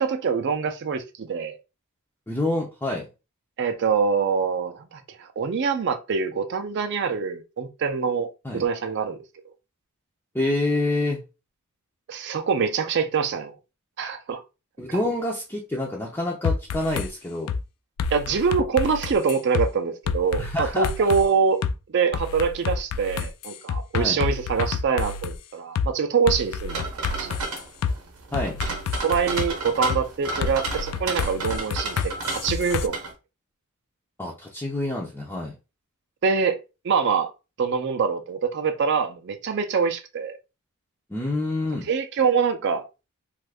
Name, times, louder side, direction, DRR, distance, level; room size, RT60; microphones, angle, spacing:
voice 1, 0.0-1.6 3.6-9.2 12.1-13.6 14.0-14.4 14.9-15.0 18.1-21.6 21.9-26.8 27.2-27.3 29.0-33.0 36.2-36.6 36.8-37.3 37.6-40.4 41.9-42.8, right 5 dB, 50° right, 0.4 m, -24 dB
voice 2, 2.3-3.1 8.4-8.6 10.3-11.2 14.8-17.5 20.4-21.1 23.9-24.2 28.3-28.6 34.2-35.5 41.1-41.9, left 2 dB, 10° left, 0.4 m, -27 dB
sound 1, 16.4-17.1 17.5-17.6 18.0-19.7 20.1-21.2 21.6-21.7 22.1-25.4 25.8-25.9 26.3-27.9 28.3-29.5 29.9-30.0 30.4-32.9, left 5 dB, 80° left, 0.3 m, -28 dB
sound 2, 26.7-33.1, right 3 dB, 80° right, 0.7 m, -32 dB
2.6 x 2.4 x 3.3 m
head